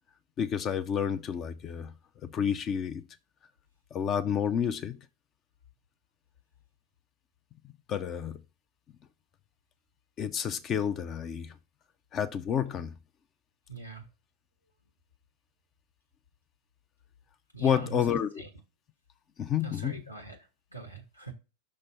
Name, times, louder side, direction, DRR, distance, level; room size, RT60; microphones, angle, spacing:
voice 1, 0.4-1.9 2.2-3.0 3.9-5.0 7.9-8.4 10.2-11.5 12.1-12.9 17.6-18.4 19.4-20.0, left 8 dB, 30° left, 0.5 m, -30 dB
voice 2, 13.7-14.0 17.5-18.5 19.6-20.4 20.7-21.3, right 3 dB, 90° left, 1.5 m, -43 dB
5.9 x 3.3 x 5.3 m
figure-of-eight pair, 90°, 0 cm